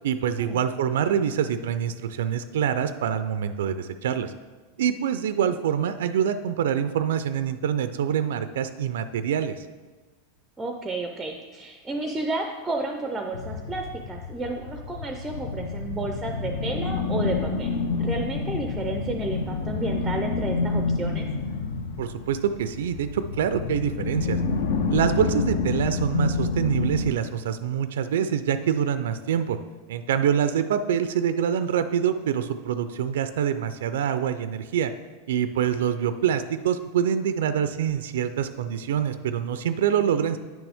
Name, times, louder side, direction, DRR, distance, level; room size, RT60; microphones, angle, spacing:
voice 1, 0.0-4.3 4.8-9.5 22.0-24.4 24.9-29.6 29.9-34.9 35.3-40.4, right 8 dB, 90° right, 11 dB, 0.4 m, -25 dB
voice 2, 10.6-17.7 18.0-21.3, right 2 dB, 10° right, 3 dB, 0.4 m, -31 dB
sound 1, 13.3-27.1, left 4 dB, 75° left, 0.7 m, -28 dB
8.9 x 6.1 x 3.5 m, 1.3 s
supercardioid pair, 170°, 0 cm